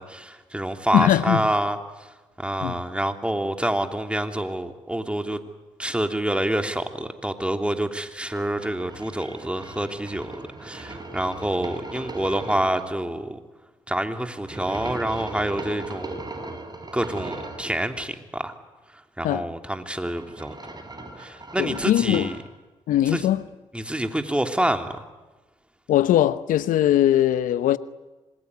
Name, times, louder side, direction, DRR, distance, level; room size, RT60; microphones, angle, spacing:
voice 1, 0.0-5.4 5.8-13.4 13.9-16.2 16.9-18.5 19.2-20.5 21.2-22.4 23.1-23.3 23.7-24.9, right 1 dB, 10° right, 3.1 m, -27 dB
voice 2, 0.9-1.4 2.6-2.8 19.2-19.5 21.6-22.3 22.9-23.4 25.9-27.8, left 12 dB, 75° left, 0.9 m, -20 dB
sound 1, 8.3-12.8 14.4-17.7 19.8-22.4, right 2 dB, 30° right, 6.6 m, -38 dB
26.0 x 20.5 x 9.6 m
hypercardioid pair, 45°, 14 cm